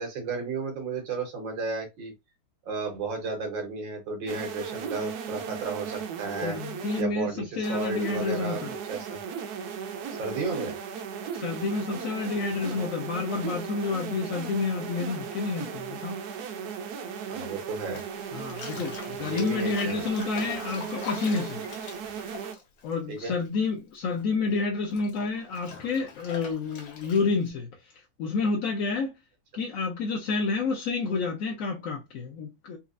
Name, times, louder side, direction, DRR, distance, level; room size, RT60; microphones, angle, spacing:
voice 1, 0.0-2.1 2.7-6.6 7.0-8.6 8.9-9.2 10.2-10.8 17.3-18.0 19.2-20.0 23.1-23.3, right 4 dB, 90° right, 1.8 m, -33 dB
mosquito buzz, 4.3-7.0 7.6-22.5, right 7 dB, 70° right, 1.0 m, -37 dB
voice 2, 6.4-8.7 11.3-16.2 18.3-21.6 22.8-29.2 29.5-32.8, left 4 dB, 65° left, 0.8 m, -29 dB
Bathtub (filling or washing), 17.8-23.7 23.9-27.5, left 5 dB, 90° left, 1.6 m, -43 dB
4.2 x 2.4 x 2.5 m
omnidirectional pair, 2.0 m